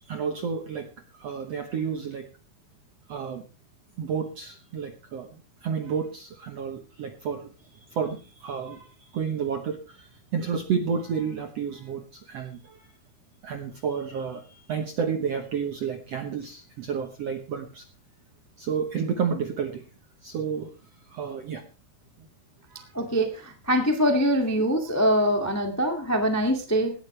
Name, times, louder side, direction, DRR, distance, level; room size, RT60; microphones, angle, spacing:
voice 1, 0.0-0.9 1.1-2.3 3.1-3.4 4.0-7.5 7.9-12.9 13.4-17.8 18.6-19.8 20.2-20.7 21.1-21.6 22.7-22.9, right 6 dB, 65° right, 6 dB, 1.6 m, -31 dB
voice 2, 22.9-26.9, equal, 10° left, 4 dB, 0.7 m, -23 dB
18.0 x 12.5 x 3.3 m, 0.33 s
omnidirectional pair, 4.4 m